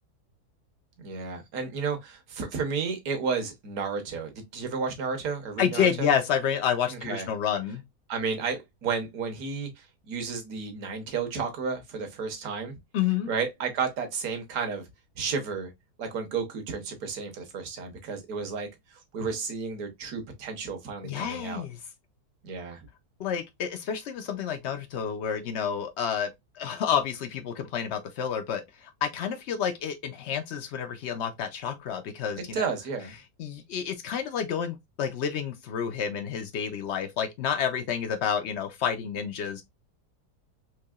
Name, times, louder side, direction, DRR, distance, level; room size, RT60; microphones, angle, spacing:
voice 1, 1.0-6.1 6.9-7.3 8.1-12.8 13.3-14.9 15.2-15.7 16.0-21.6 22.4-22.9 32.4-33.1, right 5 dB, 65° right, 1.4 m, -32 dB
voice 2, 5.6-7.8 12.9-13.3 21.0-21.8 23.2-32.7 33.4-39.6, left 8 dB, 90° left, 0.5 m, -29 dB
4.6 x 2.7 x 2.3 m
omnidirectional pair, 1.7 m